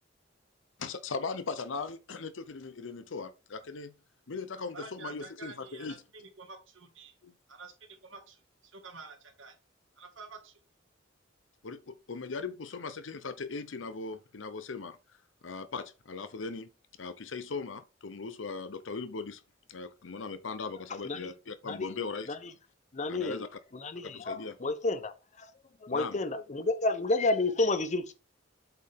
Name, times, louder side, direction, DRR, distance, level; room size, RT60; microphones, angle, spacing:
voice 1, 0.8-3.9 4.3-6.0 7.2-7.3 11.6-15.0 15.4-16.7 17.0-19.4 19.7-22.3 23.1-23.5 24.0-24.6 25.9-26.2, left 4 dB, 75° left, 0.7 m, -39 dB
voice 2, 4.7-5.9 6.1-7.2 7.5-7.7 8.0-8.4 8.7-9.5 10.0-10.5, right 4 dB, 80° right, 1.8 m, -48 dB
voice 3, 22.9-23.5 23.7-25.5 25.8-28.1, left 2 dB, 40° left, 0.8 m, -31 dB
7.9 x 4.5 x 3.6 m
head